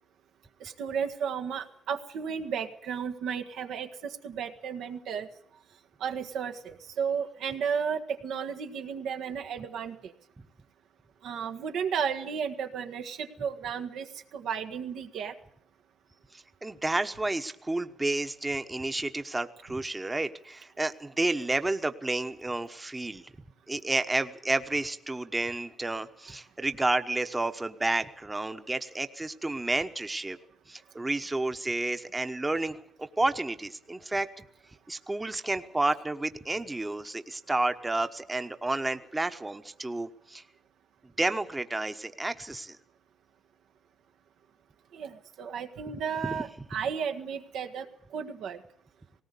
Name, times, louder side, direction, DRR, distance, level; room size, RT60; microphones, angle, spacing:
voice 1, 0.6-5.3 6.0-10.1 11.2-14.1 14.3-15.3 44.9-47.9 48.1-48.6, right 7 dB, 80° right, 6 dB, 1.6 m, -33 dB
voice 2, 16.6-23.2 23.7-30.4 30.7-34.3 34.9-40.4 41.2-42.8, right 2 dB, 15° right, 9 dB, 1.1 m, -31 dB
18.5 x 18.0 x 8.4 m, 0.66 s
cardioid pair, 90°, 0 cm